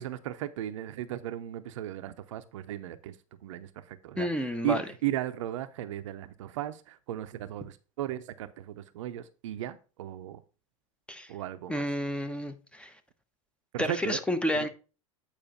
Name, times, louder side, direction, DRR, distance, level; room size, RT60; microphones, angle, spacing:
voice 1, 0.0-3.2 3.4-10.4 11.3-11.9 13.7-14.2 14.5-14.7, right 12 dB, 65° right, 0.7 m, -36 dB
voice 2, 4.2-4.8 11.1-11.3 11.7-12.9 13.8-14.7, left 1 dB, 5° left, 0.9 m, -30 dB
8.9 x 4.8 x 4.1 m
figure-of-eight pair, 85°, 17 cm